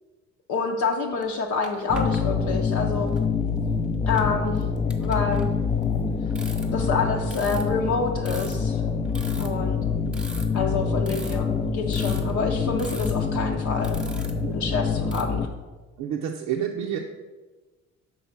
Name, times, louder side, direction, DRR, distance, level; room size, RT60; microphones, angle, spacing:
voice 1, 0.5-3.1 4.1-4.6 5.0-5.5 6.7-8.8 9.4-9.8 10.5-14.0 14.5-15.5, left 4 dB, 70° left, 0 dB, 0.7 m, -27 dB
sound 1, 1.2-1.3 1.6-2.2 3.1-3.2 4.0-5.9 6.3-6.9 7.3-7.6 8.2-8.6 9.0-9.6 10.1-10.8 11.1-11.5 11.9-12.3 12.8-13.1 13.6-14.6 15.0-15.2, right 1 dB, 5° right, 1.0 m, -41 dB
sound 2, 1.9-15.5, left 5 dB, 20° left, 0.4 m, -26 dB
voice 2, 16.0-17.0, right 9 dB, 85° right, 2 dB, 0.6 m, -29 dB
5.7 x 4.1 x 5.8 m, 1.3 s
cardioid pair, 90°, 30 cm